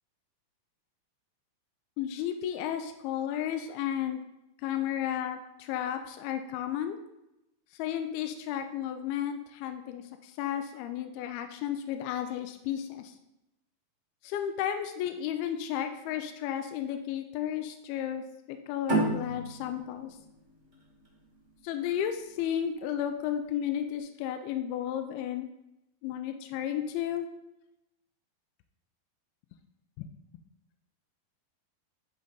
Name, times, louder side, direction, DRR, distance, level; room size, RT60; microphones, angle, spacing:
voice 1, 2.0-4.2 4.6-7.0 7.7-13.1 14.2-20.2 21.6-25.5 26.0-27.3 30.0-30.1, left 10 dB, 80° left, 7 dB, 2.3 m, -33 dB
sound 1, 18.9-22.1, right 2 dB, 45° right, 0.9 m, -32 dB
10.5 x 3.9 x 3.8 m, 0.90 s
omnidirectional pair, 4.7 m